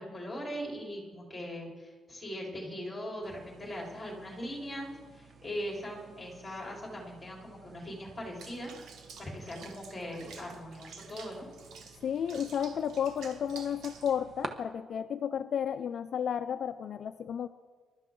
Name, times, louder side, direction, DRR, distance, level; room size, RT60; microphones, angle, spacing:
voice 1, 0.0-8.7 9.2-11.5, equal, 10° left, -2 dB, 4.1 m, -40 dB
sound 1, 3.2-14.5, right 4 dB, 35° right, 1.1 m, -51 dB
Water / Bathtub (filling or washing), 8.4-14.2, right 5 dB, 70° right, 1.8 m, -50 dB
voice 2, 12.0-17.5, left 8 dB, 50° left, 10 dB, 0.4 m, -32 dB
26.5 x 12.5 x 3.8 m, 1.4 s
cardioid pair, 170°, 0 cm